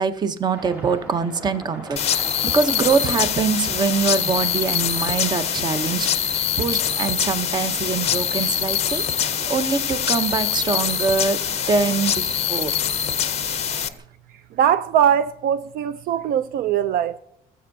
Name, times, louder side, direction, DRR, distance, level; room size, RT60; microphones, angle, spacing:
voice 1, 0.0-11.4 11.7-12.8, right 5 dB, 25° right, 0.7 m, -24 dB
Aircraft, 0.5-14.0, equal, 10° right, 3.0 m, -42 dB
sound 1, 2.0-13.9, left 9 dB, 40° left, 0.5 m, -24 dB
voice 2, 14.5-17.2, right 9 dB, 65° right, 0.4 m, -21 dB
17.5 x 7.6 x 2.6 m
cardioid pair, 145°, 16 cm